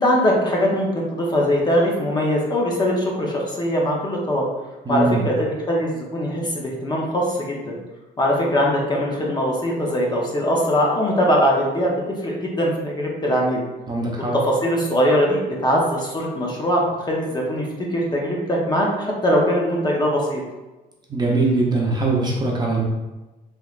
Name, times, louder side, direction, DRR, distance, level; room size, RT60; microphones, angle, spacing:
voice 1, 0.0-4.4 4.9-7.8 8.2-13.6 14.4-20.4, equal, 25° left, -2 dB, 0.6 m, -21 dB
voice 2, 4.8-5.2 13.9-14.4 21.1-22.8, right 3 dB, 25° right, -2 dB, 0.7 m, -21 dB
3.3 x 2.9 x 2.4 m, 1.1 s
cardioid pair, 110°, 17 cm